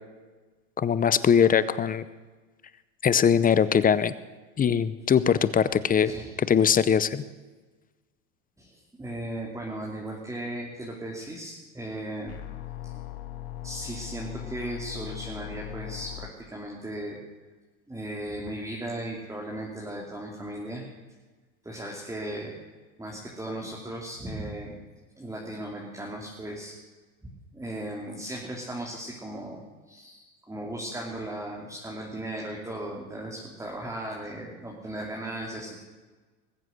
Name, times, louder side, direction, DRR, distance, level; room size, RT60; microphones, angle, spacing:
voice 1, 0.8-2.0 3.0-4.1 4.6-6.1 6.4-7.2, left 7 dB, 20° left, 16 dB, 0.7 m, -21 dB
voice 2, 6.0-6.4 8.6-12.3 13.6-17.2 17.9-20.8 21.6-22.5 23.0-24.8 25.2-26.7 27.2-29.6 29.9-35.8, right 1 dB, 5° right, -2 dB, 2.8 m, -37 dB
sound 1, 12.3-16.3, left 14 dB, 65° left, 1.8 m, -39 dB
20.5 x 7.8 x 7.8 m, 1.3 s
hypercardioid pair, 100°, 43 cm